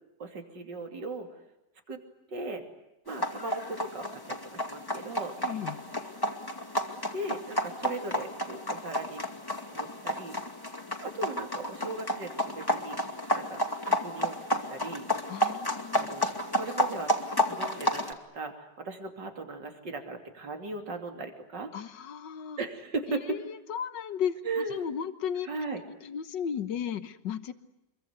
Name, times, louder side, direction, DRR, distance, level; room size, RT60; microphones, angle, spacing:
voice 1, 0.2-1.3 1.9-2.0 2.3-2.6 3.1-5.3 7.1-9.2 9.7-10.4 11.0-13.0 13.3-15.0 15.9-17.1 17.4-21.7 22.6-23.2 24.4-24.9 25.5-25.8, right 3 dB, 80° right, 5 dB, 3.6 m, -38 dB
sound 1, 3.1-18.1, equal, 10° left, 2.3 m, -31 dB
voice 2, 5.4-5.8 15.3-16.2 21.7-22.6 23.1-25.5 25.9-27.5, left 8 dB, 80° left, 11 dB, 1.9 m, -35 dB
27.0 x 23.5 x 9.6 m, 0.89 s
omnidirectional pair, 1.9 m